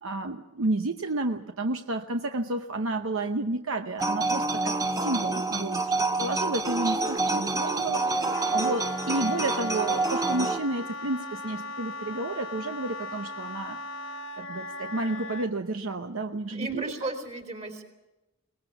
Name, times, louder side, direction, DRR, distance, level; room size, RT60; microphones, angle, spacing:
voice 1, 0.0-13.8 14.4-16.9, right 2 dB, 70° right, 6 dB, 0.9 m, -31 dB
sound 1, 4.0-10.6, right 3 dB, 15° right, 1.0 m, -27 dB
Wind instrument woodwind instrument, 7.9-15.5, left 2 dB, 65° left, 1.1 m, -38 dB
voice 2, 16.5-17.8, right 3 dB, 35° right, 5 dB, 3.5 m, -34 dB
23.0 x 19.5 x 7.1 m, 1.0 s
head